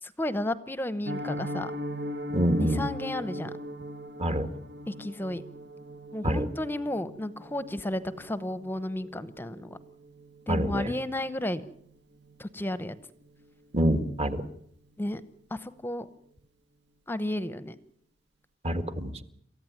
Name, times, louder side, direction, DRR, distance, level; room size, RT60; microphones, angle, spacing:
voice 1, 0.0-1.7 2.6-3.5 4.9-5.4 6.1-9.8 10.5-11.6 12.4-13.0 15.0-15.2 15.5-16.1 17.1-17.8, left 1 dB, 10° left, 14 dB, 0.9 m, -32 dB
Piano, 1.0-11.9 12.2-12.4 12.8-12.9 13.3-13.5 13.8-13.9, equal, 60° right, 1.5 m, -40 dB
voice 2, 2.3-2.8 4.2-4.5 6.2-6.4 10.5-10.9 13.7-14.4 18.6-19.1, right 1 dB, 35° right, 10 dB, 1.8 m, -26 dB
28.0 x 14.5 x 9.4 m, 0.71 s
head